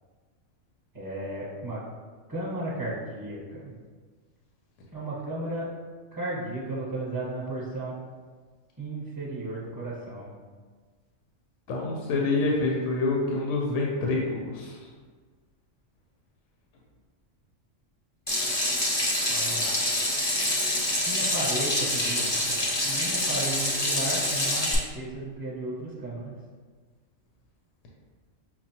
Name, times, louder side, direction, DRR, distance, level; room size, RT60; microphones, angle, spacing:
voice 1, 0.9-1.8 2.3-3.7 4.9-5.7 6.1-7.9 8.8-10.3 19.3-19.7 21.1-26.3, right 2 dB, 20° right, -8 dB, 1.0 m, -34 dB
voice 2, 11.7-14.8, left 3 dB, 75° left, -2 dB, 0.9 m, -27 dB
Water tap faucet / Sink (filling or washing), 18.3-24.7, left 1 dB, 30° left, 0.5 m, -26 dB
5.7 x 2.0 x 2.8 m, 1.5 s
omnidirectional pair, 1.3 m